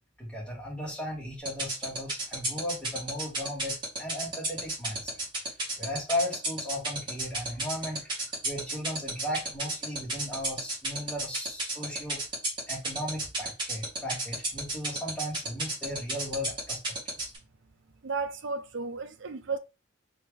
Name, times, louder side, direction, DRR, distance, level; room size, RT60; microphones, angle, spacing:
voice 1, 0.2-5.2 5.8-8.2 8.4-12.2 12.7-16.8 17.2-17.3, left 1 dB, 5° left, 2.0 m, -36 dB
sound 1, 1.5-17.4, right 2 dB, 25° right, 2.3 m, -31 dB
voice 2, 18.0-19.6, right 4 dB, 60° right, 0.6 m, -33 dB
4.3 x 3.2 x 3.4 m
head